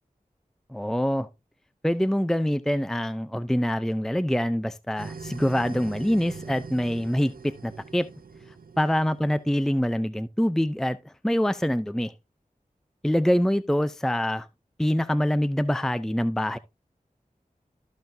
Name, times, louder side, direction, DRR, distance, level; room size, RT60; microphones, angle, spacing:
voice 1, 0.7-1.3 1.8-8.1 8.8-12.1 13.0-14.5 14.8-16.6, equal, 5° left, 0.5 m, -25 dB
sound 1, 5.0-9.8, right 4 dB, 80° right, 0.7 m, -42 dB
13.5 x 5.8 x 2.6 m
wide cardioid pair, 40°, 15 cm